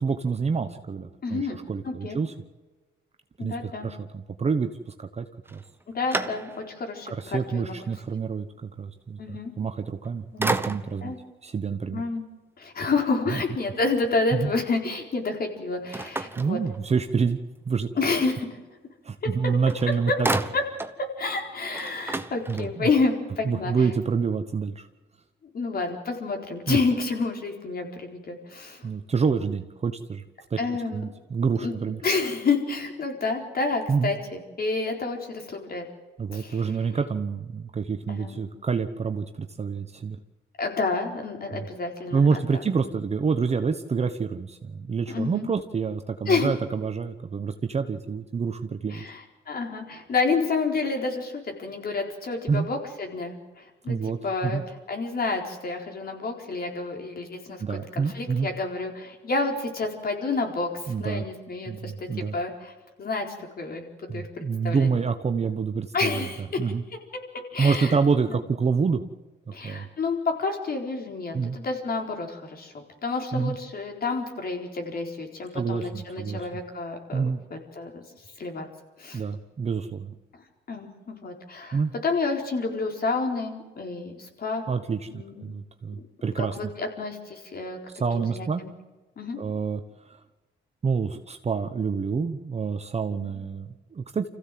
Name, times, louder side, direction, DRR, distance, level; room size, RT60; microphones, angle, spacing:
voice 1, 0.0-2.3 3.4-5.6 7.1-11.1 11.4-12.0 13.3-13.4 14.3-14.5 16.4-17.4 17.6-17.9 19.0-20.3 22.5-22.9 23.4-24.9 26.7-26.8 28.8-30.2 30.5-30.6 30.9-32.0 33.9-34.1 36.2-40.2 41.5-41.7 42.1-49.0 52.5-52.7 53.9-54.6 57.6-58.5 60.9-61.2 61.7-62.3 64.1-66.3 66.6-66.8 67.6-69.0 69.6-69.9 71.3-71.6 73.3-73.6 75.5-76.5 77.1-77.4 79.1-80.1 81.7-81.9 84.7-86.7 87.9-88.6 89.4-90.2 90.8-94.3, right 5 dB, 35° right, 7 dB, 1.1 m, -27 dB
voice 2, 1.2-2.2 3.4-3.9 5.9-7.8 9.2-9.5 10.3-10.4 11.0-11.2 11.9-12.2 12.6-16.6 18.0-18.5 19.4-19.5 20.1-20.2 20.5-20.6 21.0-23.7 25.5-28.9 30.6-31.0 31.6-31.7 32.0-35.9 36.3-36.6 38.1-38.5 40.6-42.6 45.1-45.5 46.3-46.5 48.9-54.0 54.2-54.6 54.9-62.7 63.0-63.3 63.6-64.9 65.9-66.6 67.1-67.2 67.5-68.0 68.3-68.4 69.5-78.0 78.4-78.7 79.0-79.2 80.7-84.6 85.1-85.5 86.4-87.8 88.1-88.7 89.2-89.4 93.2-93.4, left 3 dB, 50° left, 3 dB, 4.3 m, -29 dB
sound 1, 5.5-6.9 7.4-7.5 9.8-10.1 10.4-11.2 15.9-17.2 19.3-19.4 19.7-21.0 21.4-21.5 21.7-23.0, right 2 dB, 10° right, 1.1 m, -32 dB
26.0 x 15.5 x 7.7 m, 1.2 s
cardioid pair, 90°, 20 cm